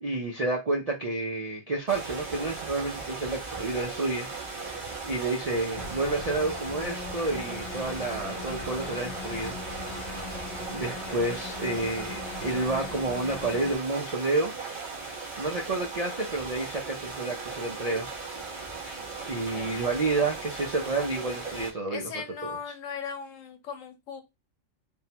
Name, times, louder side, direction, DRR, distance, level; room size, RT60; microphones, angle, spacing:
voice 1, 0.0-4.3 5.0-9.6 10.7-14.5 15.4-18.1 19.2-22.0 22.4-22.5, right 2 dB, 60° right, 0.4 m, -30 dB
sound 1, 1.9-21.7, right 4 dB, 40° right, 1.2 m, -38 dB
sound 2, 5.8-13.7, left 3 dB, 55° left, 1.0 m, -39 dB
voice 2, 19.5-19.9 21.9-24.2, left 6 dB, 80° left, 1.1 m, -38 dB
3.5 x 2.1 x 2.8 m
omnidirectional pair, 1.3 m